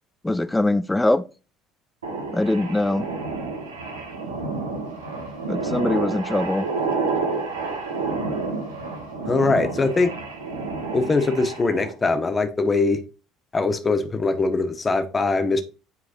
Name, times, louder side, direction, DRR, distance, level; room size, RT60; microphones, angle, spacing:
voice 1, 0.2-1.2 2.3-3.1 5.5-6.7, left 2 dB, 10° left, 0.4 m, -22 dB
sound 1, 2.0-11.9, right 3 dB, 85° right, 1.3 m, -29 dB
voice 2, 9.3-10.1 10.9-13.0 13.5-15.6, left 3 dB, 25° left, 1.0 m, -22 dB
8.4 x 4.7 x 2.5 m
figure-of-eight pair, 60°, 0 cm